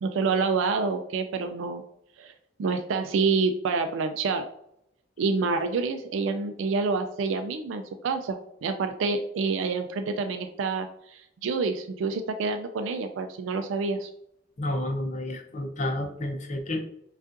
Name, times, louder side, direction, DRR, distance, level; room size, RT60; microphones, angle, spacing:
voice 1, 0.0-1.8 2.2-2.3 2.6-4.5 5.2-14.1, right 4 dB, 85° right, 7 dB, 0.4 m, -27 dB
voice 2, 14.6-16.8, left 1 dB, 40° left, 3 dB, 0.6 m, -30 dB
5.1 x 2.4 x 2.5 m, 0.75 s
head